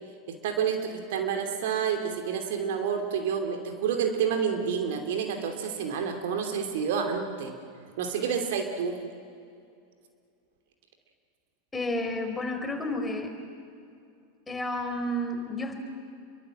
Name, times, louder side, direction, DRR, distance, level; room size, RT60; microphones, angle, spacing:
voice 1, 0.4-7.5 8.0-9.0, right 7 dB, 60° right, 5 dB, 2.9 m, -29 dB
voice 2, 11.7-13.3 14.5-15.8, left 1 dB, 15° left, 4 dB, 4.3 m, -31 dB
28.5 x 23.5 x 7.7 m, 2.4 s
figure-of-eight pair, 85°, 0 cm